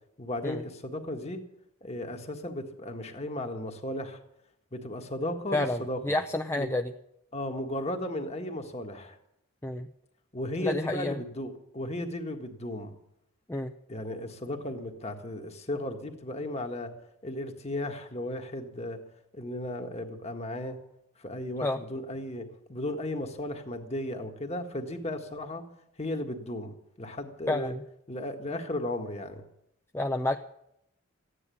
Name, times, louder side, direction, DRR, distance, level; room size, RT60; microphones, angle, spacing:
voice 1, 0.2-1.4 1.8-4.2 4.7-6.2 6.6-6.7 7.3-9.2 10.3-12.9 13.9-16.9 17.2-19.0 19.3-20.8 21.2-25.6 26.0-27.7 28.1-29.4, left 1 dB, 30° left, 4 dB, 1.7 m, -35 dB
voice 2, 5.5-6.9 9.6-9.9 10.6-11.2 13.5-13.7 21.6-21.8 27.5-27.8 29.9-30.4, left 1 dB, 10° left, 5 dB, 0.6 m, -29 dB
15.0 x 9.8 x 8.5 m, 0.77 s
head